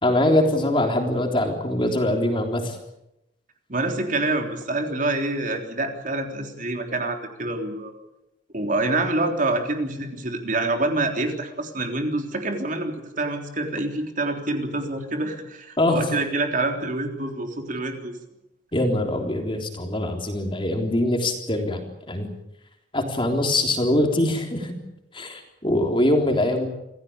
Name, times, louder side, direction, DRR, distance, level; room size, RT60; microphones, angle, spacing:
voice 1, 0.0-2.8 15.8-16.1 18.7-22.3 22.9-24.7 25.1-26.7, left 1 dB, 25° left, 3 dB, 3.7 m, -23 dB
voice 2, 3.7-7.9 8.5-18.1, right 2 dB, 45° right, 4 dB, 3.6 m, -26 dB
26.5 x 16.5 x 8.8 m, 0.88 s
head